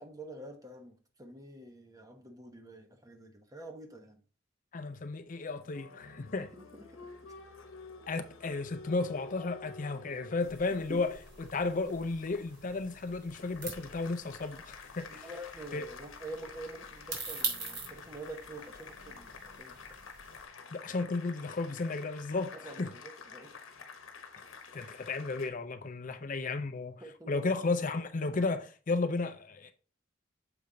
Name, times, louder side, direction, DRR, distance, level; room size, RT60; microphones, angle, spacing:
voice 1, 0.0-4.2 6.4-7.1 10.9-11.0 15.1-20.0 22.5-23.6 27.0-27.5, right 1 dB, 15° right, 1.0 m, -47 dB
voice 2, 4.7-6.5 8.1-11.1 11.4-15.3 15.7-15.8 20.7-22.9 24.7-27.0 27.3-29.7, left 3 dB, 40° left, 0.5 m, -33 dB
Applause, 5.5-25.5, left 4 dB, 85° left, 1.0 m, -50 dB
sound 1, 10.4-20.4, right 4 dB, 55° right, 3.0 m, -44 dB
6.9 x 4.8 x 3.8 m
head